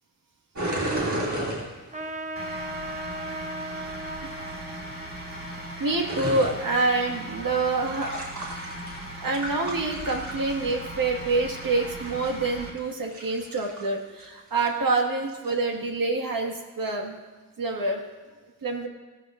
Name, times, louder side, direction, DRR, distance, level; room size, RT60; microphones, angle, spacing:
sound 1, 0.5-2.1 6.0-6.5 7.7-9.0 9.3-10.7 12.1-12.3 12.9-13.8 14.2-14.3 14.6-14.7 15.3-15.5, right 1 dB, 60° right, 2.9 m, -32 dB
Trumpet, 1.9-6.9, right 1 dB, 20° right, 0.8 m, -38 dB
sound 2, 2.4-12.7, right 1 dB, 40° right, 2.9 m, -39 dB
voice 1, 5.8-8.1 9.2-17.2 17.6-18.0 18.6-18.9, right 3 dB, 75° right, 1 dB, 1.8 m, -26 dB
16.5 x 14.0 x 2.5 m, 1.3 s
wide cardioid pair, 110°, 34 cm